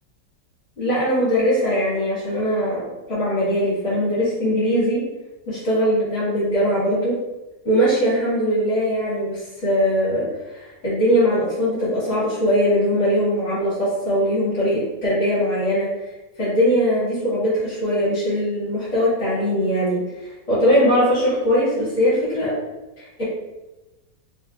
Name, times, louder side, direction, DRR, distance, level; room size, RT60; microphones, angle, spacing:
voice 1, 0.8-5.0 5.5-7.2 7.7-10.3 10.5-15.9 16.4-22.5 23.0-23.2, equal, 45° left, -10 dB, 1.8 m, -21 dB
3.8 x 3.5 x 2.4 m, 1.1 s
omnidirectional pair, 1.8 m